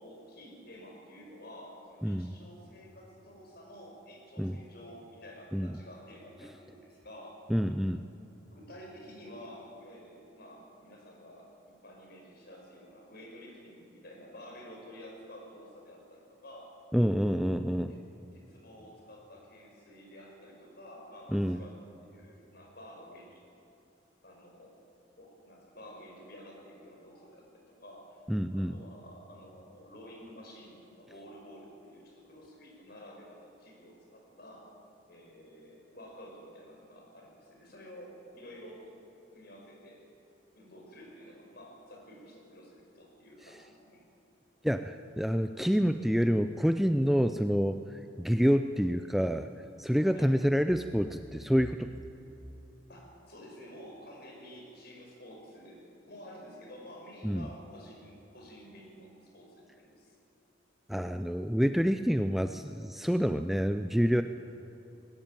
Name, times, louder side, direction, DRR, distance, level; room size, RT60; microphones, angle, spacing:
voice 1, 0.0-7.4 8.4-11.5 11.8-16.7 17.9-18.1 18.3-23.4 24.2-24.8 25.2-28.2 28.5-34.7 35.1-39.0 39.3-40.1 40.5-44.0 50.1-50.4 52.9-60.2, equal, 50° left, 0 dB, 5.5 m, -50 dB
voice 2, 2.0-2.3 4.4-4.6 5.5-5.7 7.5-8.0 16.9-17.9 21.3-21.6 28.3-28.8 44.6-49.5 49.8-51.9 57.2-57.5 60.9-64.2, equal, ahead, 8 dB, 0.4 m, -27 dB
20.0 x 18.0 x 9.0 m, 3.0 s
head